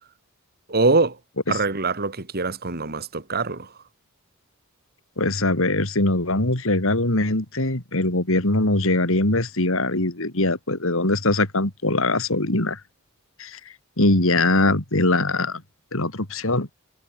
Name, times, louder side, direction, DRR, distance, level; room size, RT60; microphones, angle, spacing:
voice 1, 0.7-1.2 1.5-3.7, right 3 dB, 50° right, 2.4 m, -23 dB
voice 2, 5.2-12.8 13.4-13.6 14.0-15.6 15.9-16.7, left 2 dB, 70° left, 3.6 m, -22 dB
head